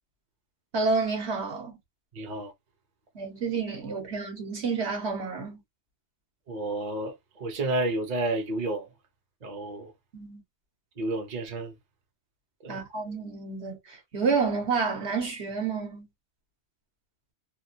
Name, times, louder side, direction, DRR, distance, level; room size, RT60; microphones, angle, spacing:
voice 1, 0.7-1.8 3.1-5.6 10.1-10.4 12.7-16.1, right 4 dB, 70° right, 1.4 m, -29 dB
voice 2, 2.1-2.5 6.5-8.9 9.4-9.9 11.0-11.7 12.6-12.8, right 2 dB, 40° right, 0.9 m, -31 dB
2.9 x 2.5 x 2.6 m
omnidirectional pair, 1.2 m